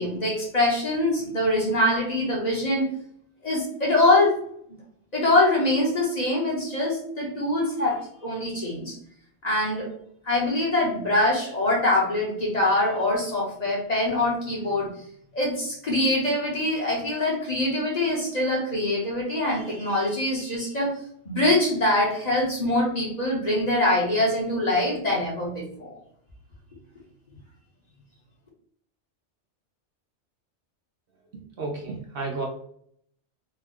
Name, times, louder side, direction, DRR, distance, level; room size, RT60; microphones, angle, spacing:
voice 1, 0.0-2.9 3.4-4.4 5.1-9.0 9.4-9.9 10.2-14.9 15.3-20.9 21.2-26.0, left 1 dB, 40° left, -3 dB, 1.0 m, -24 dB
voice 2, 31.6-32.5, right 3 dB, 55° right, 0 dB, 0.8 m, -31 dB
3.7 x 2.2 x 3.6 m, 0.66 s
omnidirectional pair, 1.2 m